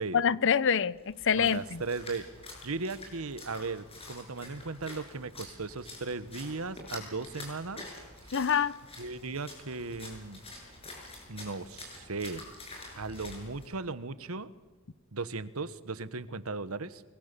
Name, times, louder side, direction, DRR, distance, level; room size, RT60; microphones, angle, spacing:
voice 1, 0.1-1.8 8.3-8.7, left 7 dB, 60° left, 0.7 m, -26 dB
Splash splatter, 1.0-13.7, left 2 dB, 30° left, 7.4 m, -47 dB
voice 2, 1.4-2.2 2.6-7.9 9.0-10.4 11.3-12.4 13.0-14.5 15.1-17.0, right 3 dB, 85° right, 1.3 m, -37 dB
26.0 x 23.5 x 6.9 m
head